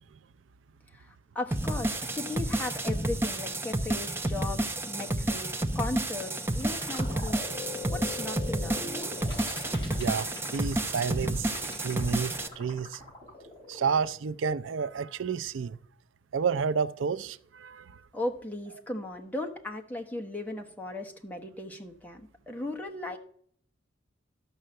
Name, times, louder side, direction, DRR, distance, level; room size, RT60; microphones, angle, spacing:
voice 1, 0.9-7.4 7.9-8.8 18.1-23.2, left 2 dB, 10° left, 1.1 m, -37 dB
sound 1, 1.5-12.5, right 1 dB, 10° right, 0.7 m, -31 dB
sound 2, 5.9-13.9, left 3 dB, 25° left, 4.1 m, -42 dB
voice 2, 10.0-11.5 11.8-13.0 13.7-15.8 16.3-18.0, right 6 dB, 80° right, 0.5 m, -30 dB
12.5 x 5.6 x 7.6 m
head